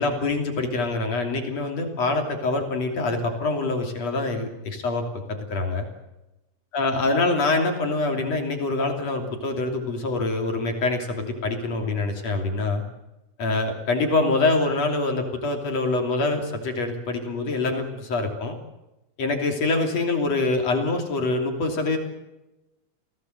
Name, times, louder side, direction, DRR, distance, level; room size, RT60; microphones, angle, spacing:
voice 1, 0.0-5.9 6.7-12.8 13.4-18.5 19.2-22.0, left 3 dB, 50° left, 4 dB, 3.9 m, -25 dB
29.0 x 18.0 x 8.0 m, 0.97 s
omnidirectional pair, 4.1 m